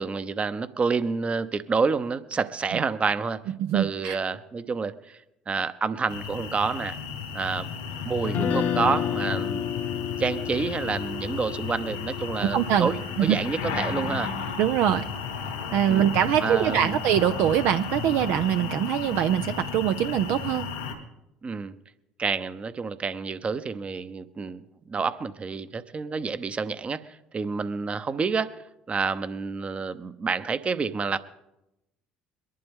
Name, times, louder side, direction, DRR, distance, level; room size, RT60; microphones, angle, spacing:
voice 1, 0.0-3.4 3.7-5.2 5.5-7.0 7.3-7.7 8.0-9.7 10.2-14.3 15.9-16.1 16.4-17.0 21.4-21.7 22.2-27.1 27.3-28.6 28.9-31.2, right 5 dB, 35° right, 13 dB, 0.8 m, -28 dB
voice 2, 3.6-4.2 12.4-12.9 13.2-13.4 14.6-15.1 15.7-20.7, right 10 dB, 65° right, 9 dB, 0.5 m, -23 dB
sound 1, 6.1-20.9, left 6 dB, 85° left, 2.5 m, -34 dB
Guitar, 8.2-14.4, left 8 dB, 55° left, 1.1 m, -31 dB
23.0 x 11.0 x 3.6 m, 0.91 s
hypercardioid pair, 60°, 4 cm